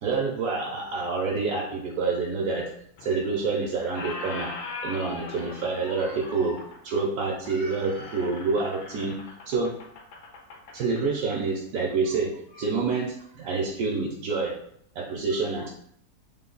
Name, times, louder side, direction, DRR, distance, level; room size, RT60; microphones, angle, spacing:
voice 1, 0.0-2.7 3.0-4.5 4.8-9.2 9.5-9.8 10.7-14.6 14.9-15.7, right 4 dB, 70° right, -2 dB, 0.9 m, -27 dB
Squeak, 3.0-3.5 3.8-11.4, left 3 dB, 75° left, 1.2 m, -41 dB
3.5 x 2.3 x 3.7 m, 0.70 s
omnidirectional pair, 1.8 m